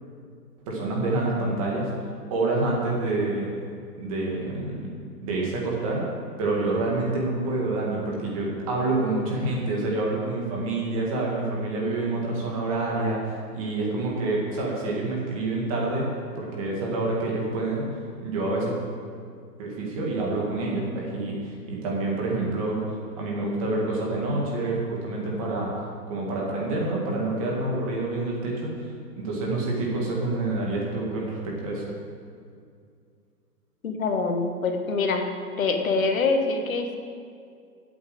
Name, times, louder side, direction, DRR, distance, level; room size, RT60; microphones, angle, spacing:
voice 1, 0.7-1.9 2.3-3.5 4.0-4.9 5.2-6.0 6.4-17.9 18.2-18.7 19.6-22.8 23.2-25.7 26.1-28.7 29.1-31.8, right 2 dB, 20° right, -3 dB, 1.8 m, -27 dB
voice 2, 33.8-35.3 35.6-37.0, left 4 dB, 55° left, 5 dB, 1.4 m, -25 dB
8.5 x 8.3 x 7.8 m, 2.3 s
hypercardioid pair, 175°, 49 cm